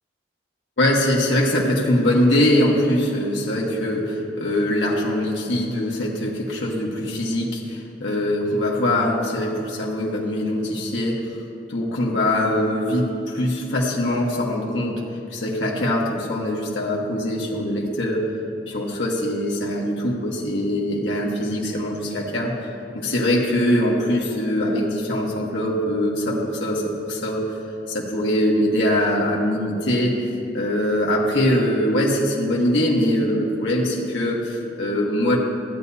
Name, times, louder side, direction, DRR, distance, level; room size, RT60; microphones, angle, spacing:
voice 1, 0.8-11.2 11.7-15.0 15.3-18.2 18.7-22.7 22.9-26.8 27.1-27.4 27.9-30.1 30.5-35.4, left 1 dB, 85° left, -3 dB, 1.3 m, -22 dB
15.0 x 9.5 x 2.7 m, 2.6 s
head